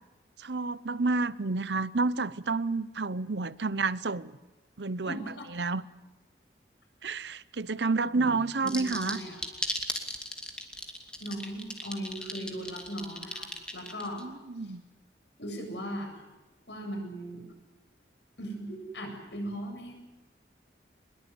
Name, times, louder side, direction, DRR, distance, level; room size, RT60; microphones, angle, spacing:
voice 1, 0.4-4.4 4.8-5.2 5.5-5.9 7.0-9.2 14.2-14.8, right 3 dB, 80° right, 0.9 m, -30 dB
voice 2, 5.1-5.5 8.1-8.4 8.6-9.4 11.2-14.2 14.6-14.7 15.4-16.1 16.7-17.4 18.4-19.9, equal, 80° left, 7.9 m, -38 dB
sound 1, 8.7-14.2, left 1 dB, 5° left, 2.5 m, -36 dB
23.5 x 21.5 x 9.5 m
head